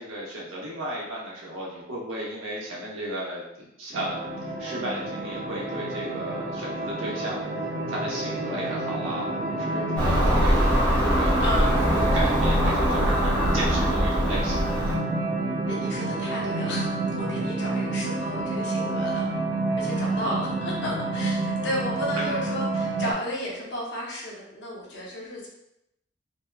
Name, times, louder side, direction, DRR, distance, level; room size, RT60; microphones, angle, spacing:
voice 1, 0.0-3.4 3.8-7.4 7.9-14.7 20.1-20.4 22.2-22.3, right 1 dB, 90° right, -4 dB, 0.8 m, -34 dB
sound 1, 3.9-23.1, right 2 dB, 45° right, 0.4 m, -29 dB
Car passing by / Engine, 10.0-15.0, equal, 5° left, 0.7 m, -23 dB
voice 2, 11.4-11.9 15.7-16.9 17.2-19.3 19.8-25.5, left 1 dB, 60° left, -4 dB, 0.7 m, -33 dB
2.7 x 2.2 x 2.3 m, 0.83 s
head